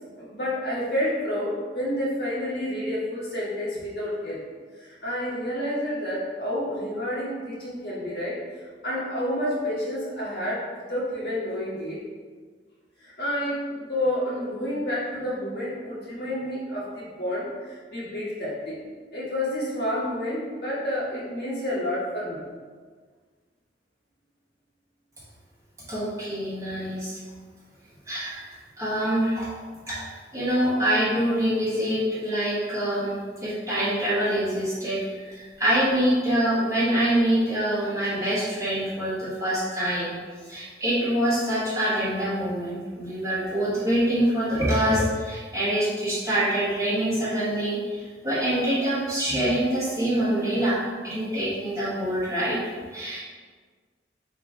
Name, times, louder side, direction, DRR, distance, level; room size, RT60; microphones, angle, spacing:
voice 1, 0.2-4.4 4.8-12.0 13.0-18.8 19.1-22.4, left 1 dB, 60° left, -7 dB, 1.5 m, -29 dB
voice 2, 25.9-27.2 28.1-29.5 29.9-40.1 40.4-52.6 52.9-53.2, right 1 dB, 15° right, -9 dB, 1.2 m, -25 dB
3.6 x 2.9 x 4.8 m, 1.5 s
head